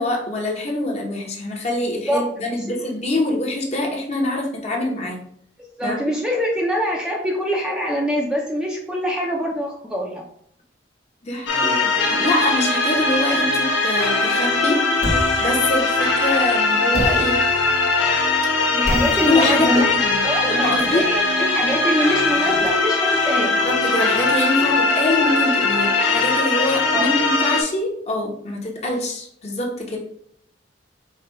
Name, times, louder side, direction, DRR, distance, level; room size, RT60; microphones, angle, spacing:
voice 1, 0.0-5.2 5.8-6.0 11.2-17.5 18.6-18.8 19.3-21.1 23.5-30.0, left 1 dB, 35° left, 0 dB, 0.9 m, -24 dB
voice 2, 5.8-10.2 18.7-19.9 20.2-23.6 26.9-27.1, equal, 5° right, -2 dB, 0.5 m, -24 dB
sound 1, 11.5-27.6, left 3 dB, 90° left, 0.9 m, -20 dB
sound 2, 15.0-16.4 16.9-22.7, equal, 60° left, 1.0 m, -31 dB
4.8 x 2.3 x 4.4 m, 0.68 s
head